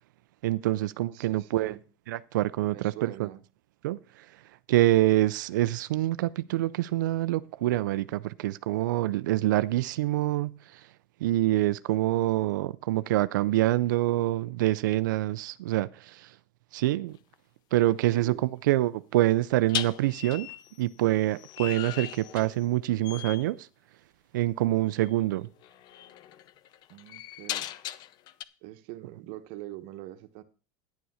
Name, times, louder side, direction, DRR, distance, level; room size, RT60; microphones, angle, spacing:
voice 1, 0.4-1.8 2.1-3.3 3.8-4.3 4.7-10.8 11.2-16.3 16.7-17.2 17.7-18.3 18.7-20.5 20.8-23.7 24.3-25.5, right 16 dB, 90° right, 0.5 m, -26 dB
voice 2, 1.1-1.8 2.6-3.4 18.0-18.6 26.9-27.7 28.6-30.4, right 15 dB, 60° right, 1.2 m, -43 dB
sound 1, 17.1-17.3 19.7-22.8 23.0-23.5 25.0-25.1 25.6-28.4, left 13 dB, 45° left, 0.7 m, -38 dB
10.5 x 7.1 x 6.3 m
supercardioid pair, 135°, 10 cm